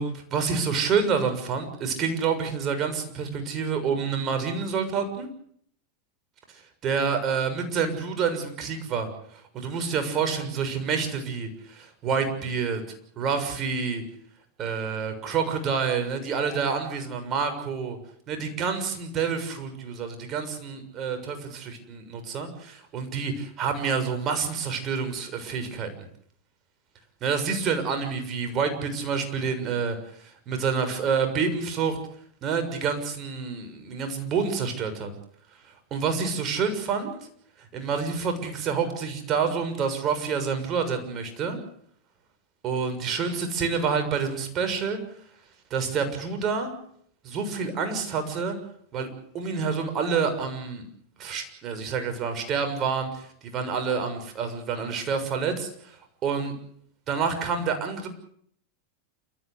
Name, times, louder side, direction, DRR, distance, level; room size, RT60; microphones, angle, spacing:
voice 1, 0.0-5.3 6.8-12.8 13.2-14.0 14.6-18.0 18.3-25.9 27.2-32.0 32.4-35.1 35.9-37.1 37.7-41.6 42.6-45.0 45.7-46.7 47.2-48.6 48.9-49.1 49.3-50.8 51.2-55.9 56.2-56.5 57.1-58.1, right 5 dB, 40° right, 7 dB, 6.7 m, -28 dB
29.0 x 14.5 x 8.3 m, 0.65 s
hypercardioid pair, 95°, 0 cm